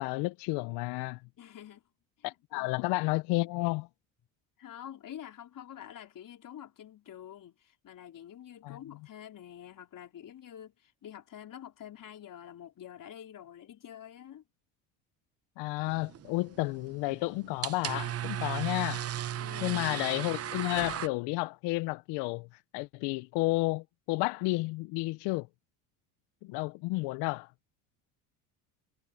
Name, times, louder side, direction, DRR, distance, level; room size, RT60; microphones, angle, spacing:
voice 1, 0.0-1.2 2.2-3.9 8.6-8.8 15.6-19.1 19.6-22.5 22.7-25.5 26.4-27.5, left 23 dB, 70° left, 0.9 m, -31 dB
voice 2, 1.4-1.8 2.2-2.9 4.6-14.4 19.3-19.9, left 10 dB, 50° left, 4.4 m, -47 dB
sound 1, 15.9-21.1, right 11 dB, 35° right, 0.8 m, -37 dB
supercardioid pair, 75°, 42 cm